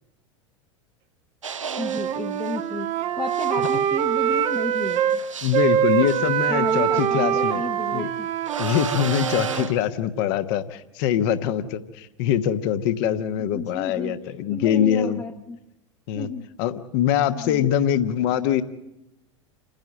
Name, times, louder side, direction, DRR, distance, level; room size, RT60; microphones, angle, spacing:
sound 1, 1.4-2.6 3.3-7.5 8.5-9.9, right 6 dB, 75° right, 0.8 m, -35 dB
Wind instrument woodwind instrument, 1.7-5.2 5.5-9.7, right 10 dB, 35° right, 0.9 m, -24 dB
voice 1, 1.8-5.2 6.5-8.3 13.5-15.6 16.2-16.5 17.4-17.7, left 4 dB, 15° left, 3 dB, 1.0 m, -33 dB
voice 2, 5.4-7.6 7.9-8.1 8.6-15.2 16.1-16.3 16.6-18.6, left 9 dB, 50° left, 11 dB, 1.2 m, -23 dB
29.0 x 10.5 x 8.9 m, 0.90 s
figure-of-eight pair, 85°, 16 cm